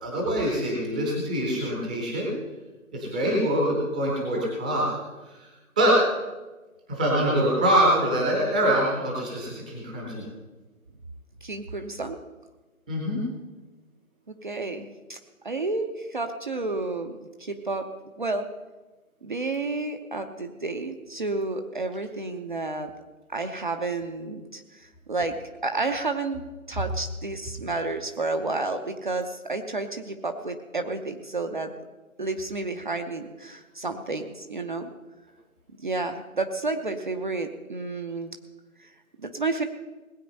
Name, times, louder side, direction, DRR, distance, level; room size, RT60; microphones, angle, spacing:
voice 1, 0.0-2.3 2.9-4.9 5.3-5.4 5.8-6.0 6.9-10.2 12.9-13.2, right 1 dB, 5° right, -3 dB, 0.8 m, -24 dB
voice 2, 11.4-12.2 14.3-15.2 15.4-17.9 18.2-18.5 19.2-22.9 23.3-31.7 32.2-34.9 35.8-38.4 38.8-38.9 39.2-39.6, right 3 dB, 35° right, 6 dB, 0.8 m, -31 dB
19.0 x 8.4 x 5.4 m, 1.2 s
figure-of-eight pair, 150°, 42 cm